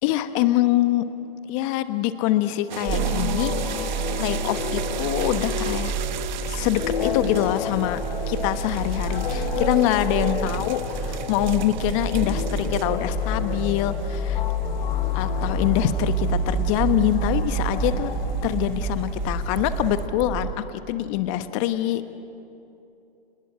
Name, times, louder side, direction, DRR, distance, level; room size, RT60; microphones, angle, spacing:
voice 1, 0.0-1.0 1.5-3.9 4.1-5.9 6.4-8.0 8.3-14.4 15.1-18.1 18.4-22.0, left 13 dB, 30° left, 11 dB, 1.2 m, -25 dB
sound 1, 2.7-20.1, right 12 dB, 50° right, 0.9 m, -39 dB
sound 2, 2.8-19.2, left 9 dB, 60° left, 1.3 m, -33 dB
sound 3, 2.9-20.5, right 3 dB, 15° right, 1.6 m, -28 dB
29.0 x 19.5 x 8.5 m, 2.8 s
hypercardioid pair, 130°, 30 cm